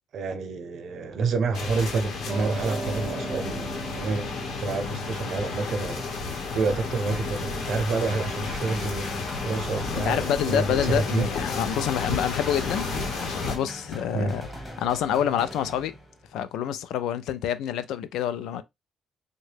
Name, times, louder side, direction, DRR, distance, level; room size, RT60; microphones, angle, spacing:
voice 1, 0.1-4.3 4.6-11.3 14.1-14.3, right 4 dB, 65° right, 0.7 m, -29 dB
sound 1, 1.5-13.6, left 4 dB, 70° left, 1.0 m, -32 dB
Piano, 2.3-8.8, right 2 dB, 30° right, 0.7 m, -39 dB
sound 2, 8.1-16.4, left 1 dB, 5° left, 1.4 m, -40 dB
voice 2, 10.0-12.9 13.2-14.4 14.8-15.9 16.3-18.6, left 9 dB, 85° left, 0.4 m, -27 dB
3.6 x 2.2 x 3.3 m
cardioid pair, 90°, 0 cm